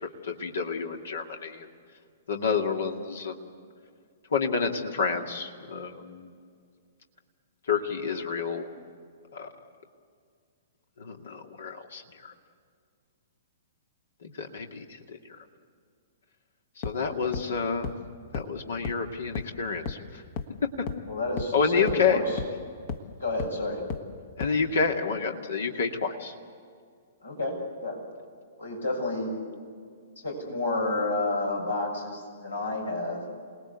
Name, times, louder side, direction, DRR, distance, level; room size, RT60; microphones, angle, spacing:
voice 1, 0.0-1.7 2.3-3.5 4.3-6.3 7.7-8.7 9.3-9.5 11.0-12.3 14.2-15.2 16.8-17.9 18.3-20.2 20.6-20.9 21.5-22.2 24.4-26.4, left 5 dB, 65° left, 4 dB, 2.3 m, -29 dB
sound 1, 16.8-16.9 17.3-17.4 17.8-17.9 18.3-18.4 18.8-18.9 19.3-19.4 19.9-20.0 20.4-20.5 20.9-21.0 21.4-21.5 21.9-22.0 22.4-22.5 22.9-23.0 23.4-23.5 23.9-24.0 24.4-24.5, left 6 dB, 45° left, 1.6 m, -32 dB
voice 2, 21.1-22.4 23.2-23.8 27.2-28.0 28.6-29.4 30.2-33.2, left 2 dB, 80° left, 1 dB, 6.6 m, -30 dB
27.5 x 19.5 x 8.3 m, 2.1 s
figure-of-eight pair, 115°, 0 cm